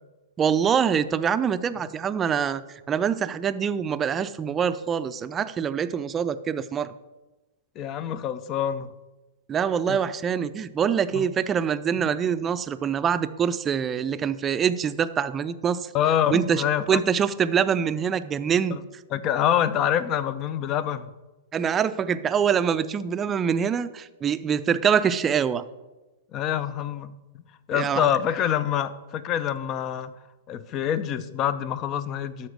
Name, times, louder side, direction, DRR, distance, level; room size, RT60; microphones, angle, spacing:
voice 1, 0.4-2.6 2.9-6.9 9.5-15.9 16.3-18.8 21.5-25.6 27.7-28.1, right 7 dB, 25° right, 12 dB, 0.5 m, -24 dB
voice 2, 7.8-8.9 9.9-10.0 11.1-11.2 12.0-12.1 15.9-17.0 18.7-18.8 19.1-21.1 26.3-27.1 27.7-30.1 30.5-32.5, left 10 dB, 35° left, 14 dB, 0.7 m, -26 dB
13.0 x 4.3 x 6.4 m, 1.1 s
hypercardioid pair, 110°, 0 cm